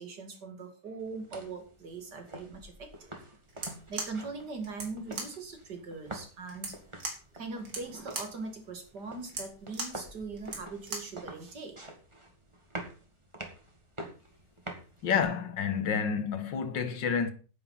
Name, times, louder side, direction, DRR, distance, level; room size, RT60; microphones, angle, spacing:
voice 1, 0.0-6.8 7.3-11.8, right 4 dB, 65° right, 2.9 m, -41 dB
sound 1, 1.0-15.2, right 1 dB, 15° right, 2.0 m, -47 dB
sound 2, 3.5-11.2, right 3 dB, 90° right, 3.2 m, -41 dB
voice 2, 15.0-17.3, left 6 dB, 90° left, 2.0 m, -29 dB
9.6 x 8.7 x 5.7 m
omnidirectional pair, 1.9 m